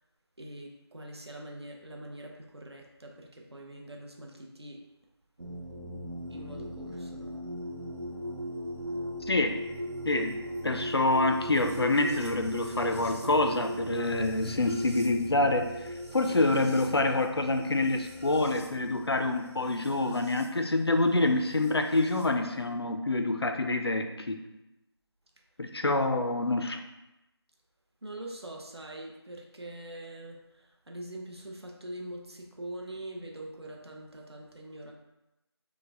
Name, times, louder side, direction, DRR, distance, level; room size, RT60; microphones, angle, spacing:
voice 1, 0.4-4.8 6.3-7.3 28.0-34.9, right 1 dB, 70° right, 0 dB, 0.8 m, -43 dB
sound 1, 5.4-20.5 21.6-22.3, equal, 90° right, 1.2 m, -38 dB
voice 2, 9.3-9.6 10.1-10.4 10.6-15.8 16.1-24.4 25.6-26.8, left 2 dB, 65° left, 6 dB, 0.5 m, -27 dB
4.8 x 2.2 x 3.4 m, 0.97 s
figure-of-eight pair, 175°, 14 cm